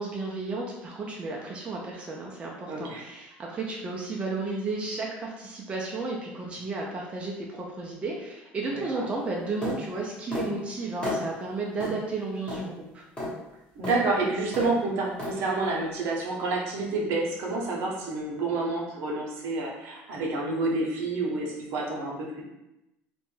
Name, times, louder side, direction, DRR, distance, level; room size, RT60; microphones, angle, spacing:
voice 1, 0.0-13.0, right 3 dB, 25° right, -3 dB, 0.4 m, -33 dB
voice 2, 2.7-3.0 8.7-9.1 13.8-22.4, right 3 dB, 65° right, -2 dB, 0.7 m, -29 dB
sound 1, 9.6-9.8 10.3-10.5 11.0-11.2 11.8-12.0 12.5-12.6 13.2-13.3 13.8-14.0 14.5-14.7 15.2-15.3, left 2 dB, 20° left, 0.9 m, -32 dB
2.5 x 2.2 x 3.1 m, 0.92 s
cardioid pair, 140°, 5 cm